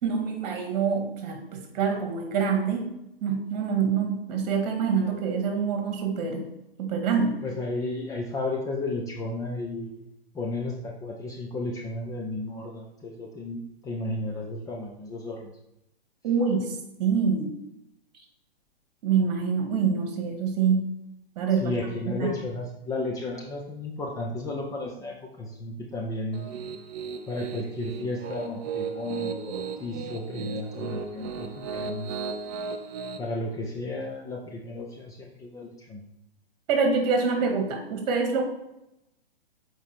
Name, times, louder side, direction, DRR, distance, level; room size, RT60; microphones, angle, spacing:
voice 1, 0.0-2.9 3.2-6.5 6.8-7.4 16.2-16.7 17.0-17.5 19.0-20.8 21.3-21.7 22.1-22.3 36.7-38.4, right 5 dB, 45° right, 4 dB, 1.8 m, -25 dB
voice 2, 7.4-15.5 21.6-26.5 27.3-32.2 33.2-36.1, left 2 dB, 10° left, -1 dB, 0.7 m, -33 dB
Piano, 26.3-33.2, right 5 dB, 15° right, 0.3 m, -35 dB
7.1 x 4.7 x 4.4 m, 0.86 s
figure-of-eight pair, 120°, 30 cm